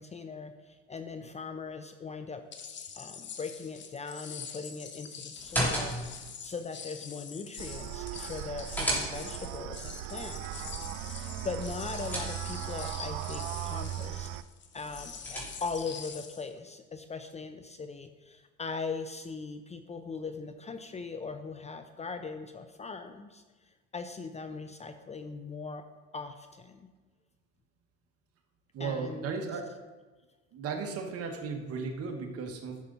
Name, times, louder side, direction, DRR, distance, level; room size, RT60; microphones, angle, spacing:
voice 1, 0.0-2.4 2.9-14.3 14.7-23.4 23.9-25.8 26.1-26.9 28.8-29.3, left 4 dB, 20° left, 8 dB, 0.5 m, -40 dB
sound 1, 2.5-16.5, left 7 dB, 35° left, 0.9 m, -45 dB
sound 2, 5.4-6.3 8.3-9.5 11.5-12.8 14.8-15.9, equal, 5° left, 3.1 m, -35 dB
sound 3, 7.6-14.4, right 14 dB, 75° right, 0.5 m, -38 dB
voice 2, 28.7-29.8 30.5-32.8, right 5 dB, 50° right, 3 dB, 1.5 m, -35 dB
11.0 x 6.7 x 4.0 m, 1.3 s
cardioid pair, 115°, 30 cm